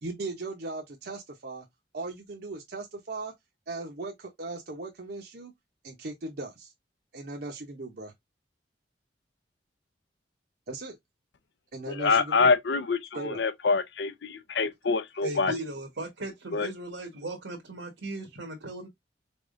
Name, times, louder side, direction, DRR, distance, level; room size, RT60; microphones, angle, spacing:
voice 1, 0.0-1.7 1.9-3.3 3.7-5.5 5.8-6.7 7.1-8.1 10.7-11.0 11.7-12.5 13.1-13.4, right 3 dB, 55° right, 0.7 m, -38 dB
voice 2, 11.9-15.6 16.5-16.7, left 4 dB, 65° left, 0.5 m, -26 dB
voice 3, 15.2-18.9, right 2 dB, 85° right, 1.2 m, -37 dB
4.2 x 3.5 x 2.5 m
head